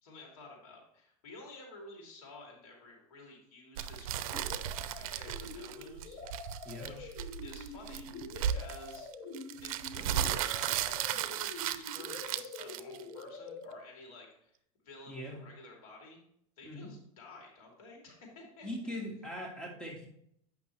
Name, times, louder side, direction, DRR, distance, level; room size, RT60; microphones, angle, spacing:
voice 1, 0.0-4.6 4.9-6.4 6.8-7.1 7.4-9.1 9.6-14.6 14.8-16.2 16.6-19.0, left 2 dB, 85° left, 0 dB, 2.8 m, -52 dB
sound 1, 3.8-13.2, right 10 dB, 70° right, 0.5 m, -35 dB
sound 2, 4.2-13.8, left 3 dB, 60° left, 3.2 m, -46 dB
voice 2, 15.1-15.4 16.6-16.9 18.6-20.1, left 1 dB, 5° left, -2 dB, 1.7 m, -41 dB
8.3 x 5.8 x 3.1 m, 0.71 s
supercardioid pair, 130°, 18 cm